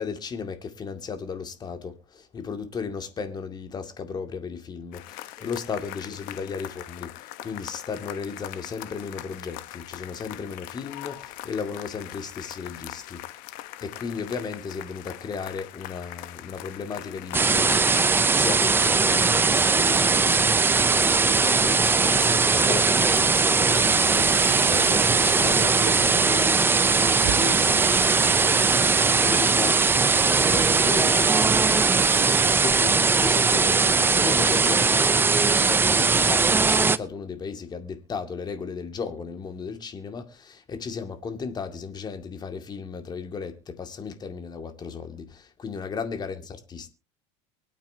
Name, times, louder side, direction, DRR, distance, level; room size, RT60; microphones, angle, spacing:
voice 1, 0.0-13.2 13.8-46.9, left 5 dB, 30° left, 2.2 m, -35 dB
sound 1, 4.9-24.1, left 15 dB, 65° left, 1.2 m, -41 dB
sound 2, 17.3-37.0, right 4 dB, 15° right, 0.6 m, -20 dB
sound 3, 23.8-32.6, right 11 dB, 70° right, 3.1 m, -35 dB
24.0 x 8.9 x 2.8 m
supercardioid pair, 120°, 15 cm